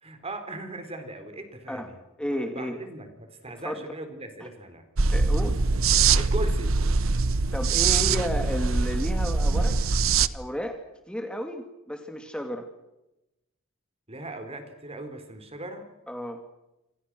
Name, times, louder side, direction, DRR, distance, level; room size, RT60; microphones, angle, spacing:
voice 1, 0.0-1.9 2.3-4.8 6.2-6.8 14.1-15.9, right 1 dB, 30° right, 8 dB, 4.0 m, -38 dB
voice 2, 1.7-2.8 3.6-3.8 5.1-5.6 7.5-9.8 10.3-10.8 11.1-12.7 16.1-16.4, equal, 5° left, 5 dB, 2.5 m, -32 dB
sound 1, 5.0-10.3, right 4 dB, 75° right, 1.0 m, -23 dB
27.5 x 27.0 x 6.3 m, 0.93 s
head